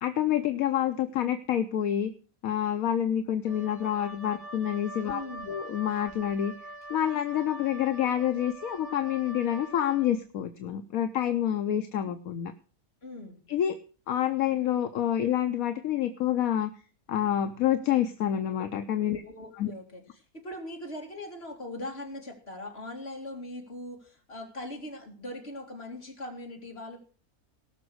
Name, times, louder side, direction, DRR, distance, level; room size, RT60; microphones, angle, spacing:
voice 1, 0.0-2.1 2.4-5.2 5.5-6.5 6.9-12.5 13.5-13.8 14.1-16.7 17.1-19.2 19.6-19.7, left 10 dB, 75° left, 8 dB, 1.2 m, -28 dB
Wind instrument woodwind instrument, 3.4-10.1, right 1 dB, 40° right, 3.0 m, -44 dB
voice 2, 5.1-5.5 13.0-13.4 19.1-27.0, left 1 dB, 45° left, 2 dB, 2.9 m, -40 dB
18.5 x 6.2 x 6.3 m, 0.37 s
omnidirectional pair, 1.5 m